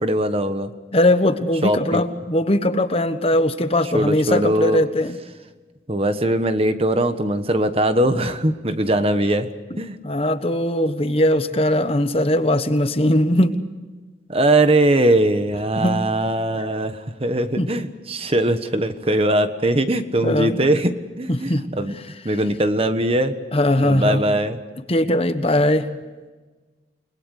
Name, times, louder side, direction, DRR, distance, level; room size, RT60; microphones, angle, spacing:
voice 1, 0.0-0.7 1.6-2.0 3.9-4.8 5.9-9.5 9.8-10.0 14.3-21.9 22.2-23.4 23.8-24.6, right 1 dB, 35° right, 9 dB, 1.3 m, -20 dB
voice 2, 0.9-5.2 10.0-13.6 15.8-16.0 16.6-16.7 17.6-17.7 20.2-20.6 21.3-21.7 23.5-24.2 24.9-25.9, left 1 dB, 35° left, 10 dB, 1.2 m, -20 dB
29.5 x 21.0 x 6.6 m, 1.3 s
head